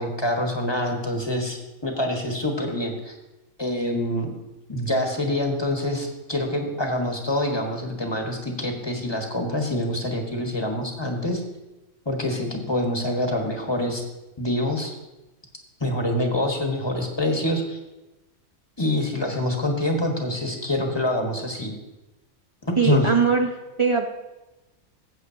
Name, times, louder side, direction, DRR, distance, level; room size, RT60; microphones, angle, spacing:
voice 1, 0.0-3.1 3.6-4.3 4.7-11.4 12.0-14.0 14.4-14.9 15.8-17.8 18.8-21.7 22.6-23.1, left 1 dB, 20° left, 2 dB, 1.2 m, -26 dB
voice 2, 22.8-23.5 23.8-24.1, right 5 dB, 35° right, 3 dB, 0.5 m, -20 dB
15.5 x 7.9 x 2.7 m, 1.0 s
omnidirectional pair, 1.5 m